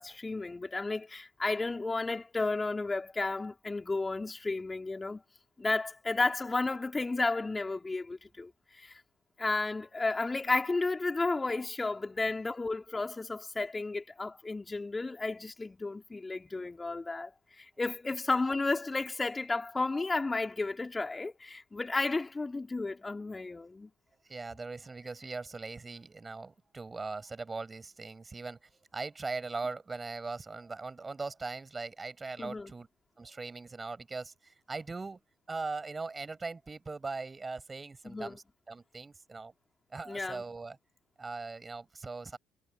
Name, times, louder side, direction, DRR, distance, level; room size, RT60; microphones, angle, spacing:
voice 1, 0.0-5.2 5.6-9.0 9.4-23.9 32.4-32.7 38.0-38.4 40.1-40.4, left 3 dB, 25° left, 3.8 m, -33 dB
voice 2, 24.3-28.6 28.9-32.9 33.2-35.2 35.5-39.5 39.9-40.8 41.2-42.4, right 3 dB, 30° right, 6.1 m, -40 dB
hypercardioid pair, 50°, 0 cm